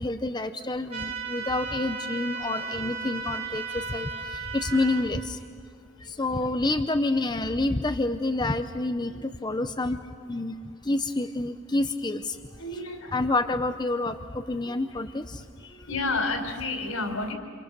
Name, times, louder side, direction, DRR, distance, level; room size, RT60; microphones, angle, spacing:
voice 1, 0.0-5.4 6.0-10.0 10.3-10.5 10.8-12.4 13.1-15.4, left 2 dB, 20° left, 7 dB, 0.7 m, -28 dB
sound 1, 0.9-5.1, right 4 dB, 35° right, 3.3 m, -35 dB
voice 2, 2.5-2.9 3.3-4.8 6.0-6.4 9.1-9.2 12.5-13.1 14.5-14.7 15.6-17.3, left 3 dB, 80° left, 4 dB, 4.6 m, -34 dB
28.5 x 28.5 x 6.7 m, 2.2 s
head